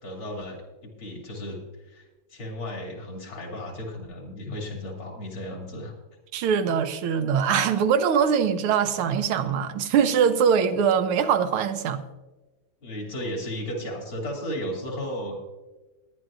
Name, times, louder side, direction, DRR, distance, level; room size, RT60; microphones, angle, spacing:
voice 1, 0.0-5.9 12.8-15.4, equal, 70° left, 3.4 m, -35 dB
voice 2, 6.3-12.0, right 7 dB, 90° right, 1.7 m, -22 dB
20.5 x 11.0 x 2.5 m
omnidirectional pair, 2.3 m